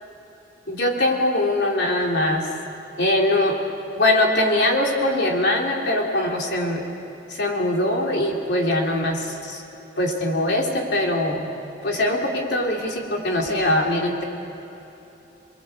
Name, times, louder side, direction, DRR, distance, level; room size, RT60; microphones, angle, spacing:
voice 1, 0.7-2.5 3.0-3.6 4.0-6.8 7.3-9.6 10.0-11.5 11.8-14.2, left 1 dB, 65° left, 0 dB, 3.4 m, -22 dB
28.5 x 21.5 x 8.1 m, 3.0 s
head